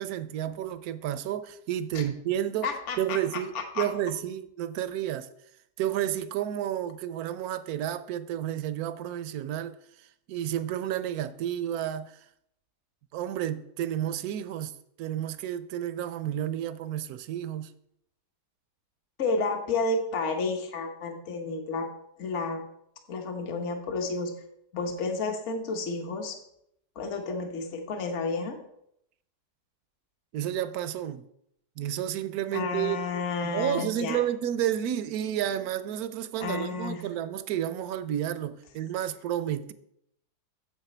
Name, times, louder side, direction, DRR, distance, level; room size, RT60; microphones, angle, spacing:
voice 1, 0.0-2.7 3.0-5.3 5.8-9.8 10.3-12.1 13.1-17.7 30.3-31.3 31.8-33.1 33.4-39.7, right 11 dB, 70° right, 1.0 m, -31 dB
voice 2, 2.6-3.2 3.5-3.9 19.2-21.9 22.2-22.6 23.1-24.3 24.7-26.4 27.0-28.6 32.5-34.2 36.4-37.0, left 3 dB, 50° left, 1.3 m, -31 dB
9.1 x 7.4 x 4.4 m
omnidirectional pair, 1.8 m